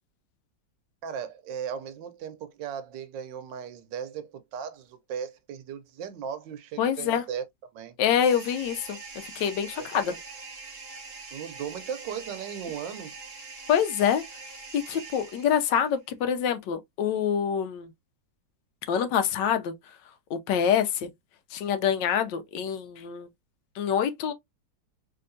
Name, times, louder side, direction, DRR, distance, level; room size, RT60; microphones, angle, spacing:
voice 1, 1.0-7.4 7.7-7.9 9.8-10.2 11.3-13.1, right 8 dB, 75° right, 1.3 m, -37 dB
voice 2, 6.8-7.2 8.0-9.0 9.3-10.1 13.7-14.2 14.7-17.9 18.9-19.7 20.3-21.1 21.5-23.3 23.8-24.3, left 8 dB, 75° left, 1.2 m, -26 dB
sound 1, 8.2-15.9, right 4 dB, 45° right, 0.6 m, -43 dB
3.4 x 2.8 x 2.5 m
omnidirectional pair, 2.0 m